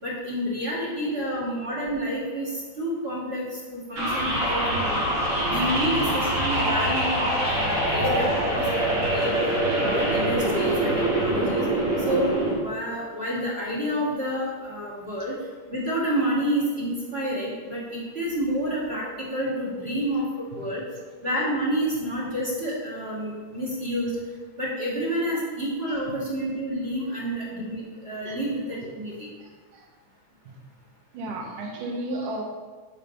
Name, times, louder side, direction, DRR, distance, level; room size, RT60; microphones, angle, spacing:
voice 1, 0.0-3.4 3.7-5.0 5.5-9.3 9.7-11.6 12.1-15.3 15.7-20.8 21.2-24.1 24.6-29.3, equal, 20° right, -6 dB, 2.0 m, -29 dB
voice 2, 0.7-1.3 4.4-4.8 5.8-6.0 20.5-20.7 25.9-26.2 28.3-28.4 29.4-29.9 30.5-30.6 31.1-32.4, right 2 dB, 75° right, 1 dB, 2.7 m, -36 dB
sound 1, 4.0-12.5, right 1 dB, 60° right, 4.1 m, -24 dB
11.0 x 5.5 x 5.4 m, 1.4 s
omnidirectional pair, 3.7 m